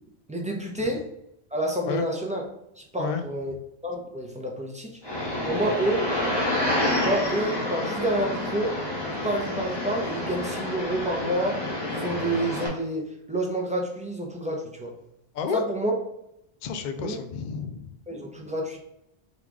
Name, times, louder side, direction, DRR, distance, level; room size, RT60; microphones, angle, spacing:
voice 1, 0.3-1.1 1.5-2.4 2.8-3.5 3.8-5.0 5.5-6.1 7.0-8.8 9.1-11.6 11.9-14.9 15.5-15.9 17.0-17.2 18.1-18.8, right 1 dB, 10° right, 0 dB, 0.5 m, -28 dB
sound 1, 5.0-12.7, left 1 dB, 25° left, 1.0 m, -28 dB
voice 2, 16.6-17.9, left 6 dB, 55° left, 7 dB, 0.5 m, -30 dB
3.8 x 2.4 x 4.6 m, 0.80 s
omnidirectional pair, 1.1 m